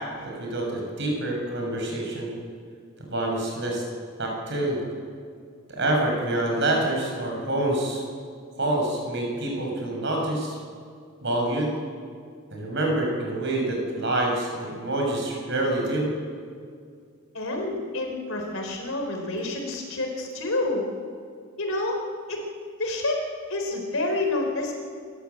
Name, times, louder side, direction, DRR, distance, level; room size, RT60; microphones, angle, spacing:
voice 1, 0.4-2.3 3.0-3.8 4.2-4.8 5.7-8.0 8.6-10.6 11.2-11.7 12.5-16.1, right 1 dB, 55° right, 0 dB, 6.1 m, -26 dB
voice 2, 17.3-20.8 21.6-22.0 22.3-22.4 22.8-23.2 23.5-24.7, left 2 dB, 70° left, 2 dB, 4.1 m, -28 dB
28.5 x 14.0 x 8.1 m, 2.2 s
head